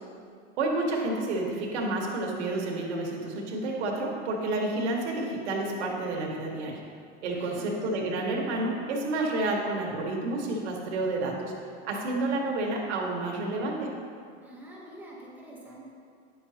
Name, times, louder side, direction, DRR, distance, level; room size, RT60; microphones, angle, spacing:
voice 1, 0.6-6.8 7.2-11.5 11.8-13.9, right 2 dB, 80° right, -1 dB, 1.6 m, -30 dB
voice 2, 7.3-7.7 14.4-15.9, right 1 dB, 5° right, -6 dB, 1.4 m, -46 dB
9.8 x 6.1 x 2.9 m, 2.3 s
supercardioid pair, 135°, 34 cm